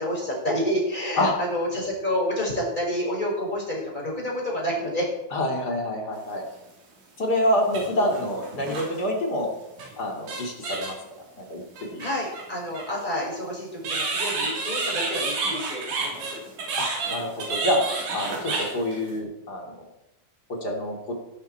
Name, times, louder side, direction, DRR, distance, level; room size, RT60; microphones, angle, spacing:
voice 1, 0.0-5.1 8.0-8.1 12.0-16.4, equal, 10° left, -2 dB, 5.3 m, -29 dB
voice 2, 5.3-6.4 7.2-9.5 10.0-11.0 11.4-12.0 16.8-17.8 18.1-19.6 20.5-21.1, left 1 dB, 30° left, 0 dB, 2.5 m, -27 dB
sound 1, 6.5-6.6 7.6-9.0 9.8-9.9 10.3-11.1 11.8-12.9 13.8-19.2, right 3 dB, 80° right, 5.9 m, -30 dB
18.5 x 12.0 x 4.5 m, 0.93 s
omnidirectional pair, 5.1 m